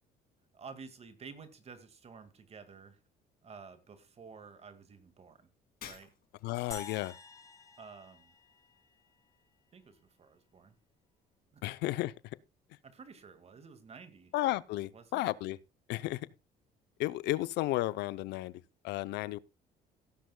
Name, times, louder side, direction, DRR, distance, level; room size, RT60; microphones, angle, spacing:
voice 1, 0.5-3.0 3.4-5.5 5.8-6.1 7.8-8.4 9.7-10.7 11.5-11.6 12.8-14.3 14.9-15.3, right 5 dB, 40° right, 1.9 m, -51 dB
Shatter, 5.8-6.6, left 9 dB, 60° left, 2.9 m, -49 dB
voice 2, 6.4-7.1 11.6-12.1 14.3-15.6 15.9-16.3 17.0-19.4, left 17 dB, 85° left, 0.7 m, -33 dB
sound 1, 6.7-9.1, left 4 dB, 20° left, 5.9 m, -48 dB
17.0 x 10.5 x 2.3 m
cardioid pair, 110°, 17 cm